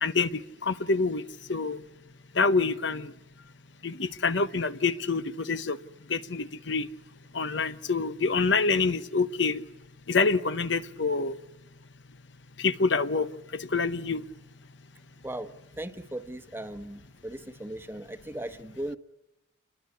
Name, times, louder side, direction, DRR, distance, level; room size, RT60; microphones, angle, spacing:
voice 1, 0.0-1.2 1.5-1.8 2.3-3.1 3.8-5.8 6.1-6.9 7.3-9.6 10.1-11.4 12.6-14.2, left 4 dB, 60° left, 12 dB, 1.0 m, -26 dB
voice 2, 15.2-19.0, right 1 dB, 10° right, 9 dB, 1.1 m, -38 dB
28.0 x 22.0 x 9.6 m, 0.98 s
head